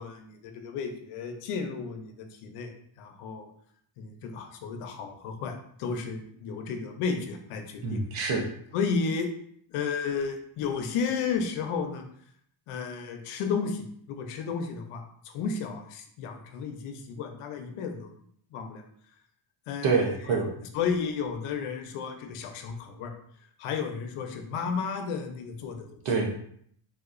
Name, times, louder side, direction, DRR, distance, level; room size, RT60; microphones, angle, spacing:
voice 1, 0.0-3.5 4.0-8.1 8.7-9.3 9.7-12.0 12.7-18.1 18.5-18.8 19.7-23.1 23.6-26.0, left 5 dB, 90° left, 5 dB, 0.7 m, -33 dB
voice 2, 7.8-8.5 19.8-20.5 26.0-26.3, right 4 dB, 80° right, 0 dB, 0.8 m, -26 dB
3.5 x 2.8 x 2.5 m, 0.65 s
cardioid pair, 140°, 49 cm